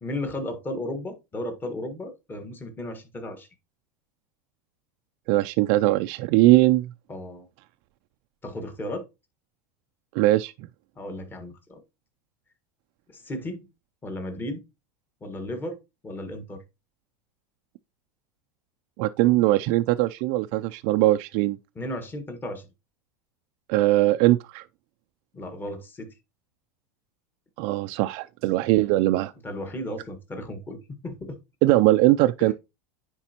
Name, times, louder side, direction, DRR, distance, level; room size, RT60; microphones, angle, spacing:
voice 1, 0.0-3.5 7.1-7.5 8.4-9.1 11.0-11.8 13.1-13.7 14.0-14.6 15.2-15.8 16.0-16.6 21.7-22.7 25.3-26.1 29.4-31.4 32.4-32.5, left 1 dB, 20° left, 1.5 m, -34 dB
voice 2, 5.3-6.9 10.1-10.7 19.0-21.6 23.7-24.6 27.6-29.3 31.6-32.5, right 17 dB, 60° right, 0.4 m, -21 dB
9.7 x 4.1 x 2.9 m
supercardioid pair, 125°, 11 cm